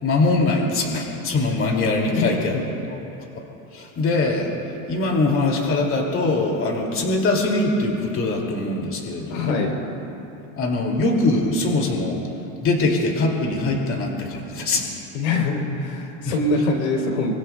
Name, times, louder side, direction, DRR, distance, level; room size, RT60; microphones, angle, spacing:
voice 1, 0.0-2.6 2.9-3.0 3.7-4.5 4.9-9.7 10.6-12.2 12.6-14.9 16.2-16.4, left 2 dB, 30° left, 0 dB, 2.5 m, -22 dB
voice 2, 2.1-2.6 9.3-9.8 15.1-17.3, left 3 dB, 90° left, 1 dB, 3.6 m, -24 dB
25.0 x 24.0 x 2.3 m, 2.8 s
supercardioid pair, 135°, 40 cm